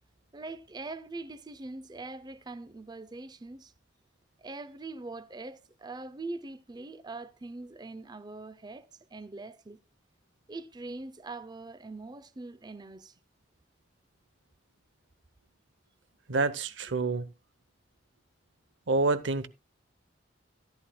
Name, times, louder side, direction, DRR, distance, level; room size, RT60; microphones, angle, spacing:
voice 1, 0.3-3.7 4.4-9.8 10.5-13.1, right 3 dB, 25° right, 0.5 m, -42 dB
voice 2, 16.3-17.3 18.9-19.5, right 3 dB, 90° right, 0.8 m, -27 dB
14.5 x 11.0 x 2.2 m
head